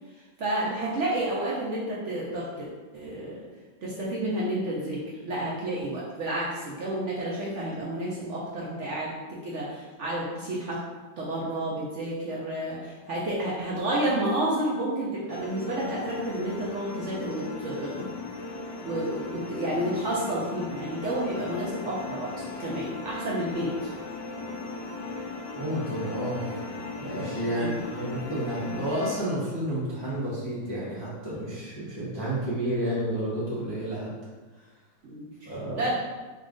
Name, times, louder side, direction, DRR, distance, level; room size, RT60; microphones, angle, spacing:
voice 1, 0.1-2.7 2.9-3.4 3.8-10.8 11.2-18.1 18.8-23.9 27.5-27.7 35.0-35.9, right 1 dB, 70° right, -5 dB, 0.7 m, -30 dB
sound 1, 15.3-29.2, left 3 dB, 75° left, 1.1 m, -37 dB
voice 2, 25.6-26.6 27.0-34.1 35.4-35.9, right 1 dB, 25° left, -9 dB, 0.5 m, -31 dB
4.2 x 2.5 x 3.6 m, 1.3 s
omnidirectional pair, 2.0 m